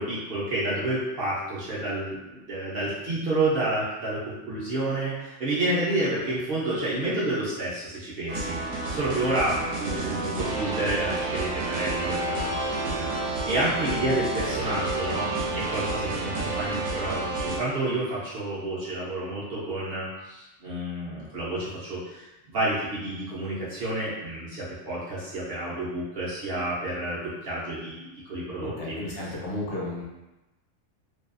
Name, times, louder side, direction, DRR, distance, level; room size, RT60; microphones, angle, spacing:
voice 1, 0.0-12.5 12.8-28.0 28.3-29.0, right 1 dB, 55° right, -8 dB, 0.7 m, -30 dB
sound 1, 8.3-17.6, right 2 dB, 85° right, 1.0 m, -30 dB
voice 2, 28.6-30.0, left 2 dB, 65° left, -4 dB, 0.9 m, -33 dB
2.6 x 2.3 x 2.4 m, 1.0 s
omnidirectional pair, 1.4 m